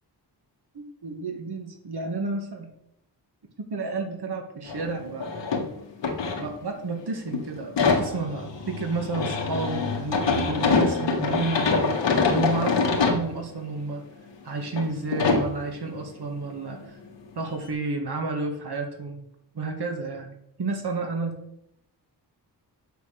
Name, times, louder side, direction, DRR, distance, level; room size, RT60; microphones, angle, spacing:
voice 1, 0.7-2.7 3.7-5.3 6.4-11.9 12.3-14.0 14.4-17.0 17.4-19.2 19.5-20.3 20.6-21.3, right 3 dB, 65° right, 3 dB, 2.1 m, -31 dB
sound 1, 4.7-4.9 5.2-6.9 7.3-13.2 13.9-14.0 14.7-14.9 15.1-15.5 17.2-17.3 17.6-17.7, left 4 dB, 85° left, 1.7 m, -25 dB
8.1 x 6.1 x 6.7 m, 0.79 s
wide cardioid pair, 130°, 42 cm